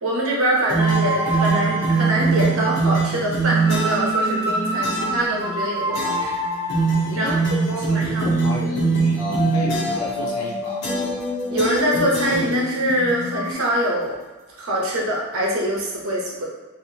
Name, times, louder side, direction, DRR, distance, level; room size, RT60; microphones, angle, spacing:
voice 1, 0.0-6.3 7.2-7.3 7.9-8.3 11.5-14.1 14.6-16.4, right 1 dB, 80° right, -3 dB, 0.9 m, -23 dB
sound 1, 0.7-4.1 4.8-5.2 5.9-6.4 6.7-10.2 10.8-11.3 11.6-12.9, right 4 dB, 55° left, 1.0 m, -23 dB
sound 2, 0.8-13.5, equal, 10° right, 0.3 m, -27 dB
voice 2, 5.9-6.3 7.1-10.9, left 1 dB, 90° left, -4 dB, 0.5 m, -33 dB
3.6 x 2.7 x 2.7 m, 1.2 s
head